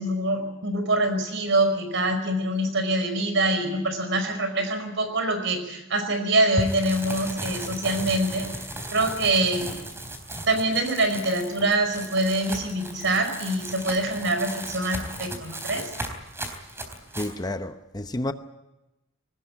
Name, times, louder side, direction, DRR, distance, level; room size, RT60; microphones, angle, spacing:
voice 1, 0.0-8.5 8.9-9.8 10.5-15.9, right 2 dB, 65° right, 5.1 m, -25 dB
sound 1, 6.6-17.3, right 1 dB, 15° right, 3.7 m, -36 dB
voice 2, 17.2-18.3, left 1 dB, 20° left, 0.8 m, -30 dB
21.5 x 19.5 x 8.6 m
head